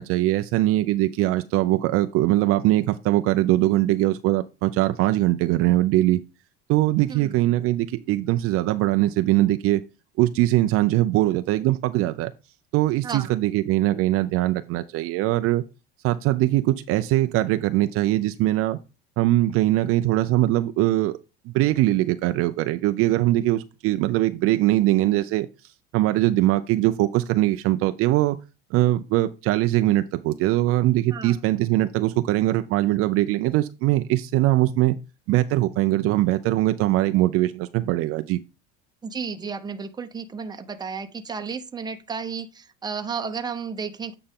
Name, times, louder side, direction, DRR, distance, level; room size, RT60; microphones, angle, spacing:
voice 1, 0.0-6.2 6.7-9.8 10.2-12.3 12.7-15.6 16.0-18.8 19.2-21.2 21.5-25.5 25.9-28.4 28.7-35.0 35.3-38.4, right 16 dB, 50° right, 0.5 m, -21 dB
voice 2, 7.1-7.4 13.0-13.3 31.1-31.4 39.0-44.1, right 5 dB, 15° right, 0.8 m, -33 dB
8.9 x 4.2 x 3.6 m
supercardioid pair, 130°, 29 cm